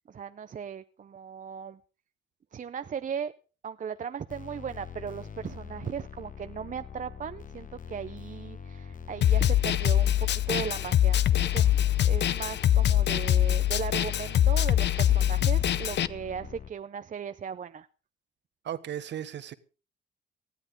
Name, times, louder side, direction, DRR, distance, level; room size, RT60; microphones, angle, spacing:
voice 1, 0.1-1.8 2.5-3.3 3.6-11.8 12.0-17.9, right 7 dB, 40° right, 11 dB, 0.7 m, -37 dB
sound 1, 4.3-16.7, left 7 dB, 40° left, 1.2 m, -44 dB
Snare drum, 9.2-16.1, left 11 dB, 60° left, 0.7 m, -23 dB
voice 2, 18.6-19.5, right 10 dB, 65° right, 12 dB, 1.3 m, -36 dB
19.0 x 13.0 x 3.7 m, 0.34 s
cardioid pair, 90°, 20 cm